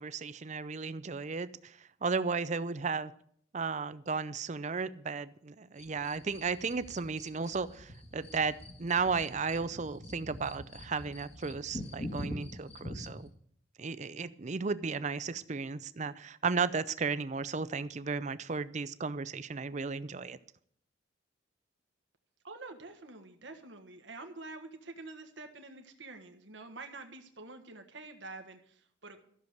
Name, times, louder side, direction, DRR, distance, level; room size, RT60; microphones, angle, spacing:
voice 1, 0.0-3.1 3.5-13.3 13.8-20.4, right 4 dB, 40° right, 0.5 m, -34 dB
sound 1, 5.8-13.3, left 1 dB, 35° left, 1.6 m, -45 dB
voice 2, 22.4-29.2, right 3 dB, 75° right, 1.4 m, -47 dB
13.5 x 6.9 x 7.9 m
head